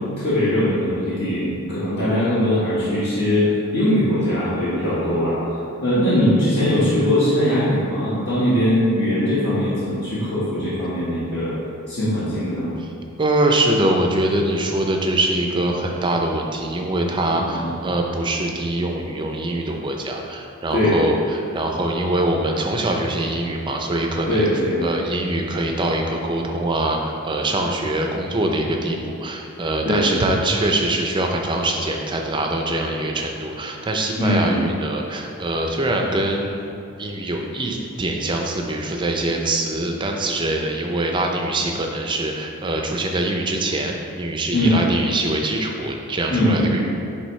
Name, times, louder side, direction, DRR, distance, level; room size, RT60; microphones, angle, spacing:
voice 1, 0.2-5.4 5.8-11.5 11.9-12.7 17.5-17.7 20.7-21.0 24.3-24.9 29.8-30.1 34.2-34.6 44.5-44.9 46.3-46.9, left 1 dB, 50° left, -12 dB, 1.4 m, -20 dB
voice 2, 13.2-24.5 24.8-36.6 37.0-46.9, right 1 dB, 20° right, 2 dB, 0.5 m, -23 dB
9.9 x 3.5 x 3.2 m, 2.6 s
head